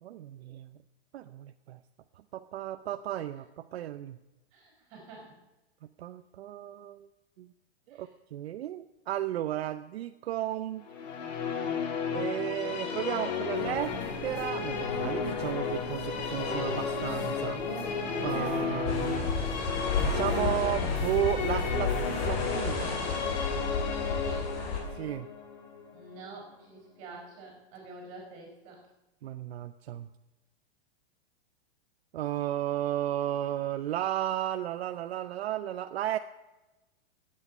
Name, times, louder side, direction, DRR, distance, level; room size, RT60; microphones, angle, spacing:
voice 1, 0.0-0.7 1.1-1.8 2.3-4.2 6.0-7.1 7.4-7.5 7.9-10.9 11.7-13.9 14.2-17.6 18.2-19.3 20.0-22.8 24.9-25.3 29.2-30.1 32.1-36.2, right 12 dB, 70° right, 9 dB, 0.6 m, -34 dB
voice 2, 4.5-5.4 7.9-8.1 24.0-24.5 25.9-28.8, right 3 dB, 25° right, -1 dB, 5.0 m, -48 dB
Musical instrument, 10.9-26.3, left 6 dB, 45° left, 1.7 m, -33 dB
sound 1, 13.5-22.3, left 1 dB, 60° left, 5.1 m, -40 dB
sound 2, 18.8-24.8, left 3 dB, 25° left, 2.7 m, -32 dB
15.5 x 8.7 x 5.4 m, 1.0 s
supercardioid pair, 175°, 32 cm